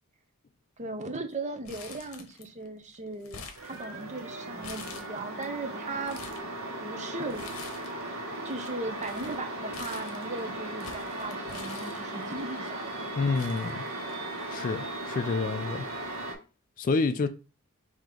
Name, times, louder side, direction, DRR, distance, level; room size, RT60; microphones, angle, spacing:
voice 1, 0.8-6.2 6.8-7.5 8.4-13.2, right 2 dB, 30° right, 0.7 m, -38 dB
Crumpling crinkling, 1.6-2.7 2.9-4.2 4.6-5.4 5.9-6.5 7.3-8.1 8.3-12.4 13.0-13.1 13.3-14.4 14.7-14.8 15.8-16.0, left 5 dB, 65° left, 0.8 m, -46 dB
sound 1, 3.5-16.3, right 1 dB, 75° right, 1.3 m, -37 dB
voice 2, 13.2-13.8 14.5-15.9 16.8-17.3, left 4 dB, 40° left, 0.3 m, -28 dB
5.0 x 2.8 x 3.7 m
head